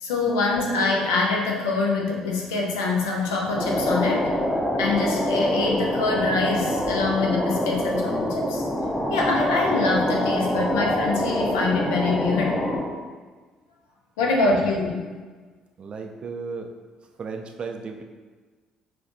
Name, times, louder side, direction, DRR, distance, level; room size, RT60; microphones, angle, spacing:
voice 1, 0.0-4.3 4.8-8.6 9.1-12.6 14.2-15.1, left 3 dB, 75° left, -1 dB, 0.5 m, -24 dB
sound 1, 3.6-12.8, left 1 dB, 5° left, 0.6 m, -25 dB
voice 2, 14.2-14.5 15.8-16.7 17.2-18.0, right 4 dB, 40° right, 4 dB, 0.4 m, -35 dB
5.7 x 2.3 x 2.5 m, 1.4 s
figure-of-eight pair, 50°, 3 cm